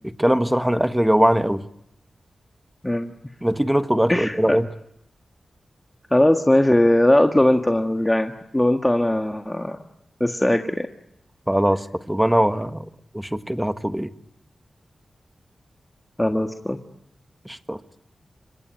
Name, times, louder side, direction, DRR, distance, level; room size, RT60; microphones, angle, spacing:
voice 1, 0.0-1.6 3.4-4.6 11.5-12.9 13.1-14.1 17.4-17.8, equal, 5° right, 11 dB, 1.5 m, -21 dB
voice 2, 4.1-4.6 6.1-9.8 10.2-10.9 16.2-16.8, left 1 dB, 15° left, 5 dB, 1.6 m, -19 dB
27.0 x 23.5 x 9.4 m, 0.79 s
wide cardioid pair, 75°, 0 cm